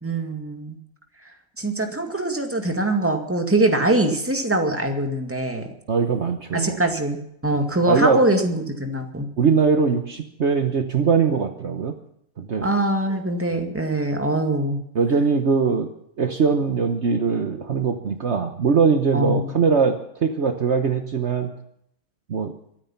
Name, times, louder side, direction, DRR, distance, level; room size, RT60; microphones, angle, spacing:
voice 1, 0.0-0.8 1.6-5.7 6.5-9.3 12.6-14.8 19.1-19.6, right 1 dB, 10° right, 4 dB, 2.0 m, -23 dB
voice 2, 5.9-6.8 7.6-8.2 9.4-11.9 12.4-12.7 14.9-15.9 16.2-21.5 22.3-22.5, right 5 dB, 55° right, 6 dB, 1.3 m, -21 dB
23.5 x 9.2 x 5.8 m, 0.73 s
omnidirectional pair, 1.5 m